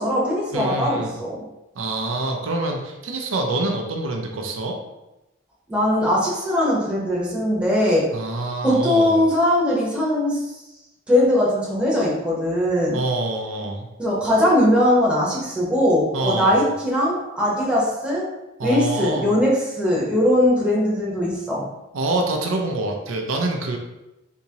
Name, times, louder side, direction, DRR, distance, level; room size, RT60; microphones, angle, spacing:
voice 1, 0.0-1.4 5.7-8.1 8.6-10.5 11.1-13.0 14.0-18.2 18.6-21.6, left 1 dB, 5° right, -6 dB, 0.8 m, -20 dB
voice 2, 0.5-1.1 1.8-4.8 8.1-9.2 12.9-13.9 16.1-16.7 18.6-19.3 21.9-23.8, right 2 dB, 90° right, 2 dB, 0.5 m, -26 dB
3.5 x 2.9 x 2.8 m, 0.97 s
head